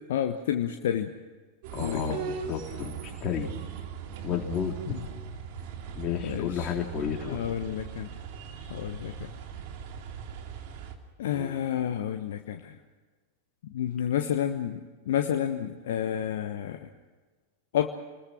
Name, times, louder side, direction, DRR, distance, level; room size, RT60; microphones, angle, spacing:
voice 1, 0.1-1.1 1.8-2.0 4.9-5.0 6.2-6.7 7.3-8.1 8.7-9.1 11.2-12.7 13.7-16.9 17.7-17.9, left 10 dB, 60° left, 6 dB, 1.2 m, -30 dB
sound 1, 1.6-11.0, right 7 dB, 45° right, 2.6 m, -40 dB
voice 2, 1.7-3.5 4.2-4.7 6.0-7.4 11.3-11.6, left 7 dB, 30° left, 0 dB, 4.0 m, -32 dB
28.0 x 20.5 x 6.1 m, 1.3 s
figure-of-eight pair, 90°, 0 cm